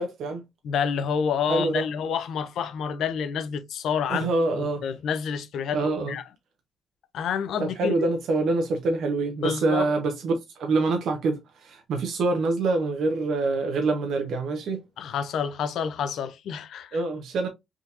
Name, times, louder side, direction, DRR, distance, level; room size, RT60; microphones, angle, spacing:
voice 1, 0.0-0.5 1.5-1.9 4.1-4.8 5.7-6.2 7.6-14.8 16.9-17.5, right 3 dB, 70° right, 0.7 m, -26 dB
voice 2, 0.6-4.3 4.5-6.2 7.1-7.9 9.4-9.9 15.0-17.0, left 7 dB, 75° left, 0.5 m, -28 dB
3.6 x 2.8 x 2.4 m
cardioid pair, 90°, 0 cm